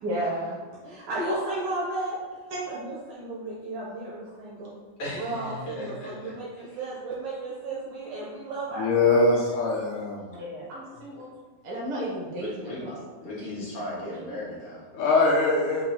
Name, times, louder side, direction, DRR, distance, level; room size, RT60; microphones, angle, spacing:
voice 1, 0.0-0.6 1.2-1.6 2.5-2.6 10.4-11.3 11.6-12.9 13.4-13.5 14.0-14.1, right 1 dB, 50° right, -5 dB, 1.9 m, -33 dB
voice 2, 0.8-2.2 2.7-4.7 5.1-9.3, right 2 dB, 70° right, -5 dB, 2.1 m, -34 dB
voice 3, 5.0-6.3 6.7-6.8 12.4-12.8 13.2-14.8, left 1 dB, 45° left, -7 dB, 2.3 m, -37 dB
voice 4, 8.8-10.4 14.9-15.8, left 3 dB, 80° left, -4 dB, 1.9 m, -22 dB
5.3 x 4.2 x 4.2 m, 1.3 s
omnidirectional pair, 4.2 m